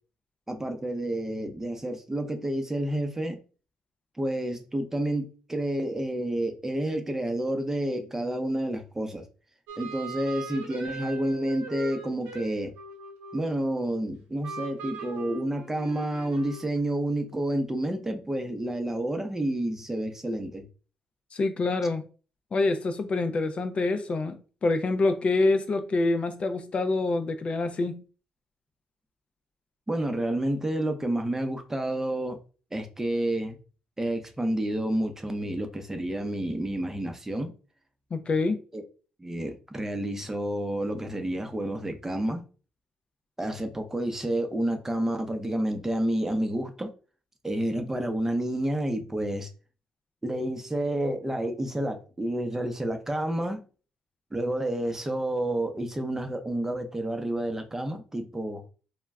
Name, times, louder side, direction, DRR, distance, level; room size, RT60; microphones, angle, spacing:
voice 1, 0.5-3.4 4.2-9.2 9.8-12.7 13.3-20.7 29.9-32.4 32.7-33.6 34.0-37.5 38.7-38.8 39.2-42.5 43.4-46.9 47.4-49.5 50.2-53.6 54.3-58.6, right 1 dB, 15° right, 0.6 m, -29 dB
sound 1, 9.7-14.0 14.4-16.8, right 4 dB, 85° right, 0.5 m, -41 dB
voice 2, 21.3-22.0 22.5-28.0 38.1-38.6, left 3 dB, 45° left, 0.4 m, -26 dB
2.2 x 2.0 x 3.4 m
supercardioid pair, 65°, 3 cm